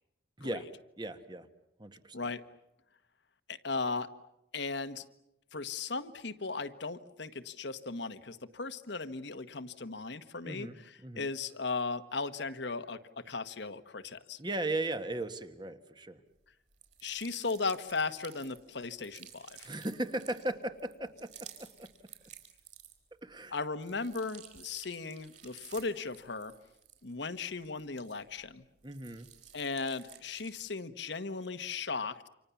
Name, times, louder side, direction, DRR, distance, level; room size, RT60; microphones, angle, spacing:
voice 1, 0.4-0.7 1.0-1.5 1.8-2.2 10.4-11.3 14.4-16.2 19.6-21.9 23.2-23.5 28.8-29.3, right 2 dB, 20° right, 9 dB, 1.4 m, -37 dB
voice 2, 3.5-4.1 4.5-5.0 5.5-10.7 11.1-14.4 17.0-19.7 23.5-26.5 27.0-28.6 29.5-32.3, left 4 dB, 65° left, 10 dB, 1.3 m, -37 dB
sound 1, 16.7-23.2 23.6-28.5 28.8-30.7, right 9 dB, 40° right, 4.2 m, -54 dB
29.0 x 26.0 x 7.1 m, 0.87 s
head